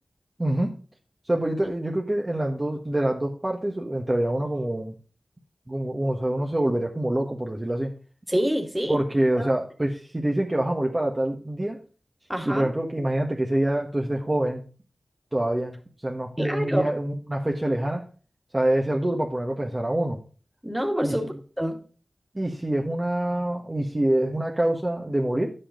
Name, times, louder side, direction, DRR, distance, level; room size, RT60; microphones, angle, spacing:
voice 1, 0.4-0.7 1.2-4.9 5.7-7.9 8.9-11.8 12.4-14.6 15.3-15.8 16.0-18.0 18.5-20.2 21.0-21.2 22.3-25.5, right 1 dB, 25° right, 0 dB, 1.4 m, -25 dB
voice 2, 8.3-9.0 9.4-9.5 12.3-12.7 16.4-17.0 20.6-21.8, equal, 5° right, 3 dB, 2.2 m, -27 dB
9.9 x 7.9 x 3.8 m, 0.37 s
wide cardioid pair, 60°, 0 cm